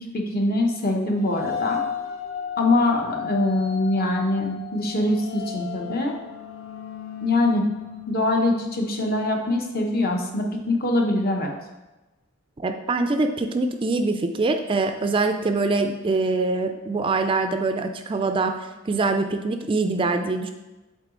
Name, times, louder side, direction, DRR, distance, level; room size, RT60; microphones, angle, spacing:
voice 1, 0.0-1.8 2.6-6.1 7.2-7.7 8.1-11.5, left 2 dB, 50° left, 1 dB, 1.0 m, -23 dB
sound 1, 1.2-9.1, left 8 dB, 80° left, 0.8 m, -34 dB
voice 2, 12.6-18.5 18.9-20.5, right 3 dB, 25° right, 6 dB, 0.3 m, -24 dB
8.0 x 3.9 x 3.7 m, 1.1 s
head